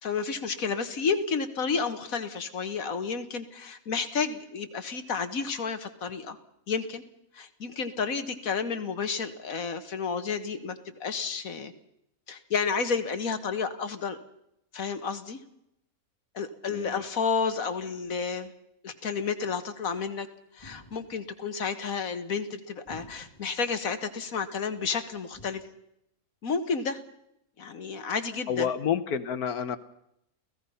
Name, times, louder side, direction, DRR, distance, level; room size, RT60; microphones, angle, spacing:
voice 1, 0.0-6.4 6.7-7.0 7.3-11.7 12.3-14.2 14.7-15.4 16.3-18.5 18.8-20.3 20.5-25.6 26.4-27.0 27.6-28.7, left 5 dB, 70° left, 9 dB, 1.8 m, -31 dB
voice 2, 16.7-17.0 28.5-29.8, left 8 dB, 85° left, 10 dB, 1.6 m, -29 dB
sound 1, 20.6-21.4 22.9-23.7 25.3-25.5, left 1 dB, 20° left, 2.3 m, -50 dB
28.5 x 16.5 x 5.6 m, 0.77 s
omnidirectional pair, 1.5 m